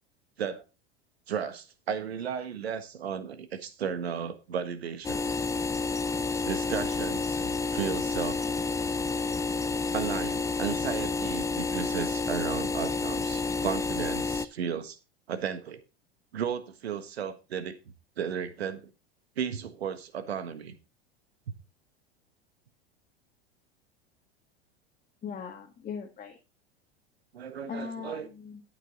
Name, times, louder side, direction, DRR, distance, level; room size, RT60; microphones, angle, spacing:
voice 1, 1.3-5.3 6.4-8.4 9.9-15.0 15.3-15.8 16.3-17.8 18.2-18.9 19.4-20.7 27.3-28.3, right 7 dB, 80° right, 1.6 m, -34 dB
sound 1, 5.0-14.5, left 4 dB, 10° left, 0.6 m, -30 dB
voice 2, 25.2-26.4 27.7-28.6, left 6 dB, 25° left, 1.9 m, -39 dB
12.5 x 8.1 x 4.0 m
hypercardioid pair, 90°, 31 cm